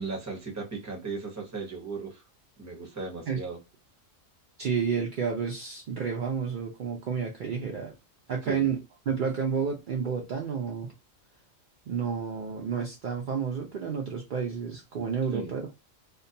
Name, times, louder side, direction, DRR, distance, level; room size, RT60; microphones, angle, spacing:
voice 1, 0.0-2.2 2.6-3.6 8.5-8.7 15.3-15.5, right 4 dB, 20° right, 0.6 m, -36 dB
voice 2, 4.6-7.9 8.3-8.8 9.1-10.9 11.9-15.7, right 6 dB, 70° right, 0.4 m, -30 dB
2.3 x 2.2 x 2.6 m
omnidirectional pair, 1.4 m